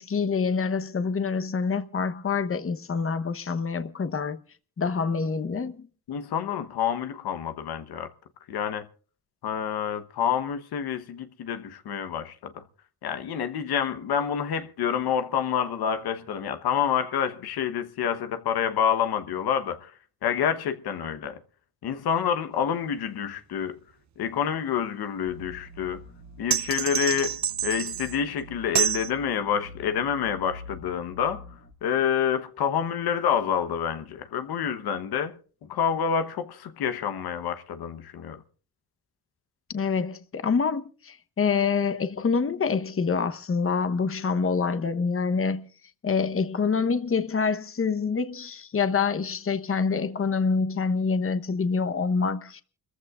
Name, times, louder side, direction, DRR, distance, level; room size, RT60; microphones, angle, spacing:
voice 1, 0.0-4.4 4.8-5.9 39.7-45.6 46.0-52.6, left 5 dB, 35° left, 1.0 m, -26 dB
voice 2, 6.1-8.1 8.5-8.9 9.4-12.6 13.0-19.9 20.2-21.4 21.8-23.8 24.2-26.0 26.4-31.4 31.8-35.4 35.7-38.4, left 8 dB, 85° left, 1.1 m, -28 dB
sound 1, 25.3-31.7, left 2 dB, 55° left, 2.6 m, -46 dB
sound 2, 26.5-28.2 28.8-29.1, right 9 dB, 50° right, 0.7 m, -27 dB
29.5 x 14.5 x 2.5 m
cardioid pair, 65°, 37 cm